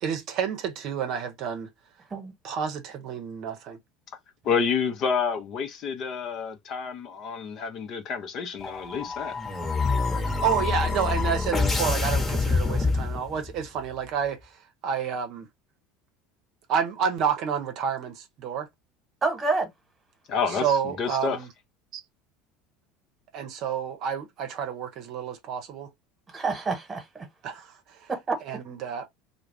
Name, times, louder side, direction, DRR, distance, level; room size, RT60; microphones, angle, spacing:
voice 1, 0.0-1.7 2.4-3.8 10.4-14.4 14.8-15.5 16.7-18.7 20.5-21.5 21.9-22.0 23.3-25.9 27.4-27.7 28.0-28.1 28.5-29.1, right 7 dB, 55° right, 0.6 m, -29 dB
voice 2, 4.4-9.4 20.3-21.4, left 6 dB, 50° left, 0.6 m, -29 dB
sound 1, 8.6-13.6, left 3 dB, 20° left, 1.0 m, -26 dB
voice 3, 19.2-19.7 26.3-27.3 28.1-28.4, right 3 dB, 25° right, 1.2 m, -28 dB
2.3 x 2.1 x 3.2 m
hypercardioid pair, 75°, 0 cm